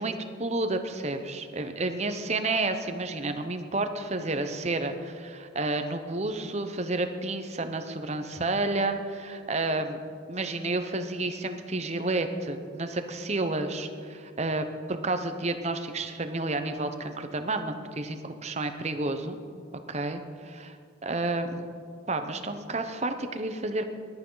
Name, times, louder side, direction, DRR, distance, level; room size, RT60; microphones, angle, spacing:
voice 1, 0.0-10.0 10.3-19.4 19.9-20.7 21.0-21.6 22.1-23.8, right 2 dB, 30° right, 8 dB, 0.8 m, -30 dB
20.5 x 12.0 x 3.9 m, 2.2 s
head